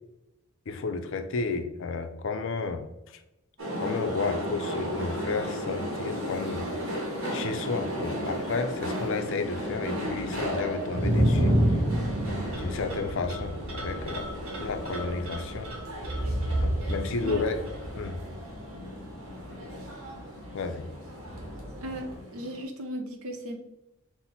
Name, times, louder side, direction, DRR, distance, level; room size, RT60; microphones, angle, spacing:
voice 1, 0.7-2.8 3.8-6.7 7.3-11.8 12.6-15.8 16.6-17.6 17.9-18.2 20.5-20.9, left 4 dB, 60° left, 7 dB, 0.5 m, -32 dB
sound 1, 3.6-22.6, equal, 65° right, 1.3 m, -35 dB
sound 2, 4.8-4.9 9.5-9.6 9.8-22.2, equal, 35° right, 1.6 m, -31 dB
voice 2, 21.8-23.6, equal, 80° right, 4 dB, 0.8 m, -36 dB
5.7 x 2.1 x 4.1 m, 0.94 s
head